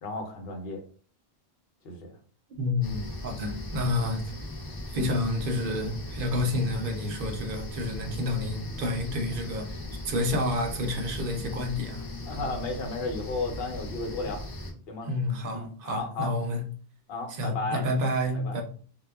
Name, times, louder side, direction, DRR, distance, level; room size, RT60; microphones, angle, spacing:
voice 1, 0.0-0.8 1.8-2.1 12.3-14.4 14.9-15.1 15.5-16.3 17.1-17.8 18.3-18.6, left 3 dB, 70° left, 0.9 m, -33 dB
voice 2, 2.6-4.3 4.9-9.8 10.1-12.0 15.0-16.6 17.3-18.6, left 1 dB, 65° right, 0.7 m, -29 dB
sound 1, 2.8-14.7, left 1 dB, 40° left, 0.3 m, -38 dB
2.2 x 2.0 x 3.3 m
omnidirectional pair, 1.1 m